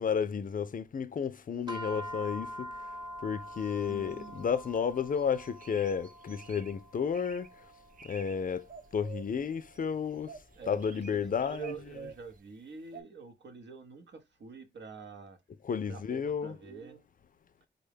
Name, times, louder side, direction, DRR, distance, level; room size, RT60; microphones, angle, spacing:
voice 1, 0.0-2.7 3.2-7.5 8.0-10.3 10.7-12.1 15.6-16.6, left 7 dB, 45° left, 0.4 m, -32 dB
sound 1, 1.7-12.2, equal, 25° right, 0.9 m, -46 dB
sound 2, 3.5-4.7 5.1-6.7 7.1-7.5 7.9-8.3 8.6-9.9 10.3-12.3 12.9-13.0, right 6 dB, 45° right, 0.5 m, -49 dB
voice 2, 3.6-4.5 10.5-15.4 15.9-17.0, right 5 dB, 75° right, 0.8 m, -47 dB
3.8 x 2.1 x 3.3 m
cardioid pair, 40°, 19 cm